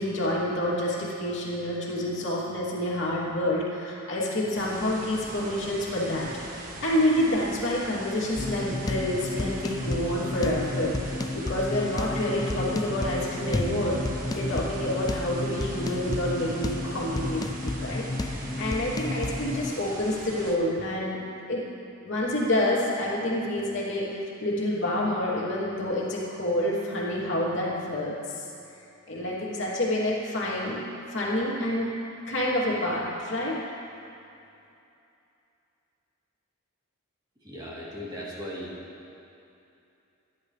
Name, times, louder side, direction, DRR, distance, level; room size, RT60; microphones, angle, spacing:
voice 1, 0.0-14.0 14.3-21.2 21.5-21.6 22.0-28.4 29.1-30.8 31.1-31.9 32.2-33.6, left 1 dB, 55° left, -6 dB, 3.0 m, -28 dB
sound 1, 4.6-20.6, right 1 dB, 40° right, 1.6 m, -41 dB
sound 2, 8.4-19.7, left 2 dB, 20° left, 0.3 m, -32 dB
voice 2, 37.4-38.8, equal, 20° right, -8 dB, 3.2 m, -37 dB
27.0 x 11.0 x 3.3 m, 2.7 s
head